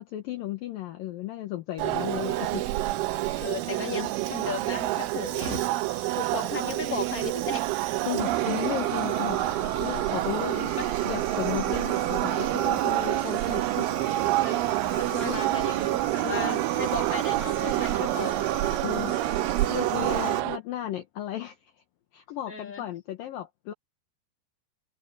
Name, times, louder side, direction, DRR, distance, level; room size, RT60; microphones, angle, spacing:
voice 1, 0.0-2.7 3.3-4.1 5.5-5.6 8.1-9.4 9.8-10.7 11.0-13.9 15.2-15.4 16.2-16.6 18.8-19.2 19.7-21.7 22.1-23.7, left 12 dB, 70° left, 2.2 m, -35 dB
Fire, 1.8-20.4, right 9 dB, 65° right, 4.9 m, -34 dB
sound 1, 1.8-20.6, right 18 dB, 85° right, 3.1 m, -28 dB
sound 2, 1.9-7.0, right 11 dB, 40° right, 6.7 m, -44 dB
voice 2, 3.4-5.5 6.1-7.8 10.8-10.9 12.9-13.1 14.4-14.6 15.0-18.3 19.1-19.5 22.5-22.8, left 5 dB, 20° left, 3.1 m, -36 dB
omnidirectional pair, 5.8 m